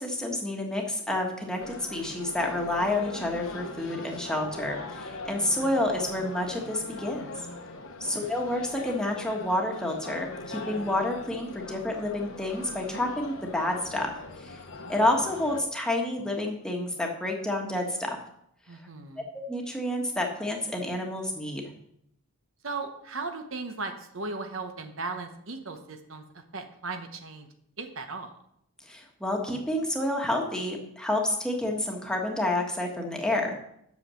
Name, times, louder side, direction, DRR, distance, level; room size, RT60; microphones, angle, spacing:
voice 1, 0.0-7.3 8.0-14.6 14.9-18.2 19.3-21.6 28.9-33.5, left 1 dB, 5° left, 0 dB, 1.4 m, -29 dB
sound 1, 1.6-15.6, left 3 dB, 65° left, 1.1 m, -41 dB
voice 2, 8.0-8.3 18.7-19.3 22.6-27.5 27.8-28.4, right 3 dB, 60° right, 6 dB, 1.0 m, -37 dB
8.4 x 6.9 x 6.3 m, 0.75 s
head